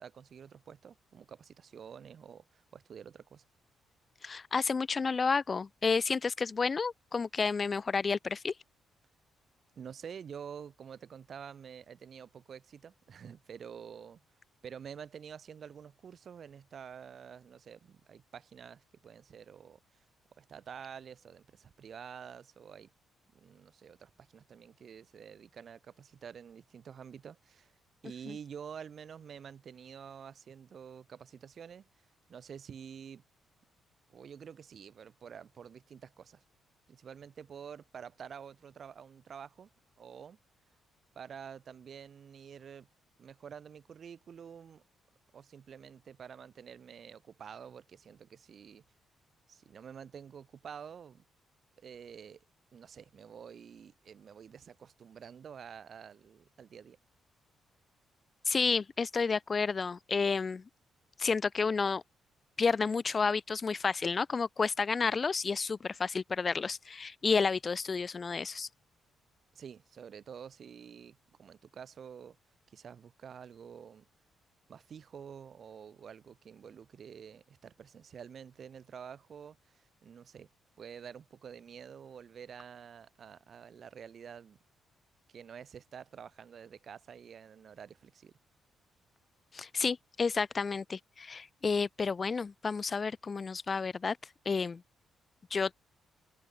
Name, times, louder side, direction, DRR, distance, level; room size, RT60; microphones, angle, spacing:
voice 1, 0.0-3.4 9.8-14.2 14.6-19.8 20.4-22.9 23.3-27.7 28.0-31.9 32.3-33.2 34.1-36.4 36.9-39.7 40.0-40.4 41.2-42.9 43.2-44.8 45.3-48.8 49.5-51.2 51.8-52.4 52.7-57.0 69.5-72.4 72.7-74.1 74.7-80.5 80.8-84.6 85.3-88.3, right 7 dB, 40° right, 7.2 m, -48 dB
voice 2, 4.2-8.5 28.3-28.4 58.5-60.6 61.2-62.0 62.6-68.7 89.5-94.2 94.5-94.8 95.5-95.7, left 5 dB, 25° left, 0.5 m, -31 dB
cardioid pair, 170°, 0 cm